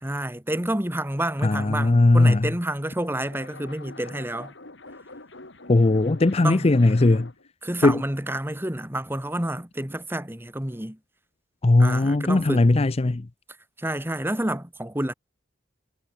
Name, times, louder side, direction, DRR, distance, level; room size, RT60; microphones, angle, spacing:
voice 1, 0.0-4.5 6.4-6.7 7.6-11.0 11.8-12.7 13.8-15.1, right 1 dB, 10° right, 2.2 m, -29 dB
voice 2, 1.4-2.5 5.7-7.3 7.8-8.0 11.6-13.3, left 2 dB, 30° left, 0.6 m, -18 dB
sound 1, 2.8-7.5, left 2 dB, 65° left, 3.0 m, -44 dB
head